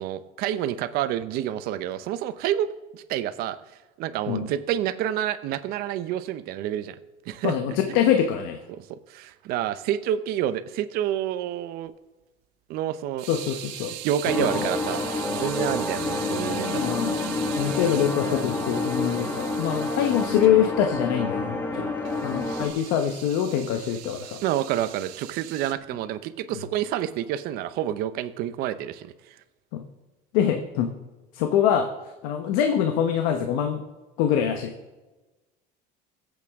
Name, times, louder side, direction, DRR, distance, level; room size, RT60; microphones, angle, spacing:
voice 1, 0.0-3.6 4.0-7.0 7.3-7.5 8.8-11.9 12.7-13.3 14.0-17.0 24.4-29.1, right 11 dB, 55° right, 13 dB, 0.8 m, -28 dB
voice 2, 7.4-8.6 13.3-13.9 14.4-14.7 16.7-17.2 17.6-21.9 22.2-24.4 29.7-29.8 30.3-30.9 31.3-31.9 32.2-33.8 34.2-34.7, left 9 dB, 75° left, 6 dB, 1.1 m, -24 dB
sound 1, 13.2-20.5 22.0-25.7, right 14 dB, 85° right, 1.0 m, -40 dB
sound 2, 14.3-22.7, left 2 dB, 10° left, 1.3 m, -28 dB
22.5 x 8.3 x 3.6 m, 1.1 s
cardioid pair, 160°, 19 cm